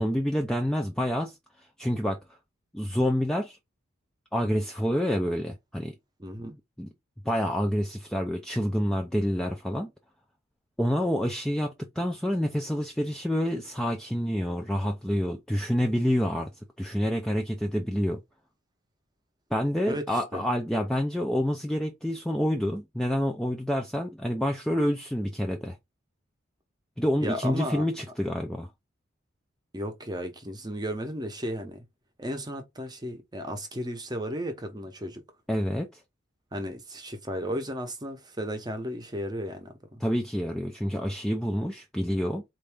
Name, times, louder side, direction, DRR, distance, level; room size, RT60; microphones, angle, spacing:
voice 1, 0.0-1.4 1.8-2.2 2.7-3.6 4.3-5.9 6.8-6.9 7.3-9.9 10.8-16.5 16.8-18.2 19.5-25.8 27.0-28.7 35.5-35.9 40.0-42.4, equal, 5° left, 0.4 m, -28 dB
voice 2, 6.2-6.6 19.9-20.4 27.2-27.9 29.7-31.8 32.2-35.2 36.5-40.0, equal, 20° right, 0.7 m, -34 dB
4.3 x 2.6 x 3.4 m
head